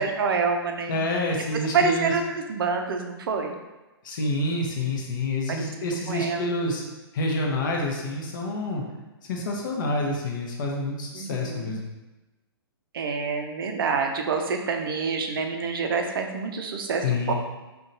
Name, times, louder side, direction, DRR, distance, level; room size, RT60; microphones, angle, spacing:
voice 1, 0.0-1.0 1.7-3.6 6.1-6.5 11.1-11.8 12.9-17.3, right 5 dB, 60° right, 4 dB, 0.4 m, -27 dB
voice 2, 0.9-2.1 4.0-6.8 7.1-8.8 9.3-11.9 17.0-17.3, left 2 dB, 50° left, 0 dB, 0.7 m, -28 dB
3.7 x 2.3 x 2.6 m, 1.1 s
figure-of-eight pair, 120°, 13 cm